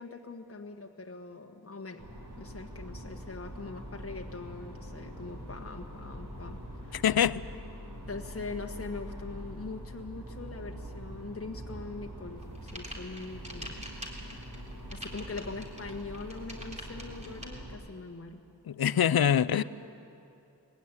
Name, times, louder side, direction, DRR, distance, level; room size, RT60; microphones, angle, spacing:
voice 1, 0.0-2.0 2.4-6.6 6.8-7.0 8.1-13.8 14.9-18.4 19.2-19.6, left 3 dB, 35° left, 2 dB, 1.4 m, -42 dB
sound 1, 2.0-17.7, equal, 45° right, 4.4 m, -44 dB
voice 2, 6.9-7.4 18.7-19.6, left 9 dB, 65° left, 18 dB, 0.6 m, -25 dB
sound 2, 12.4-17.5, equal, 15° right, 3.5 m, -44 dB
20.0 x 16.0 x 9.8 m, 2.6 s
wide cardioid pair, 80°, 40 cm